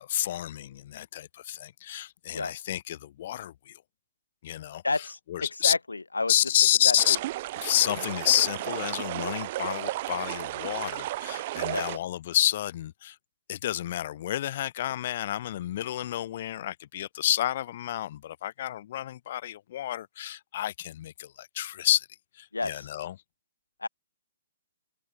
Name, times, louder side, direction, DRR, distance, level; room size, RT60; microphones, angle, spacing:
voice 1, 0.0-3.8 4.4-5.7 6.3-7.2 7.6-13.2 13.5-22.1 22.3-23.2, left 12 dB, 40° left, 2.1 m, -29 dB
voice 2, 4.8-6.3 6.8-7.0 11.7-12.0 22.5-22.9 23.8-23.9, left 3 dB, 75° left, 2.6 m, -30 dB
sound 1, 7.0-12.0, right 16 dB, 35° right, 2.2 m, -34 dB
figure-of-eight pair, 125°, 0 cm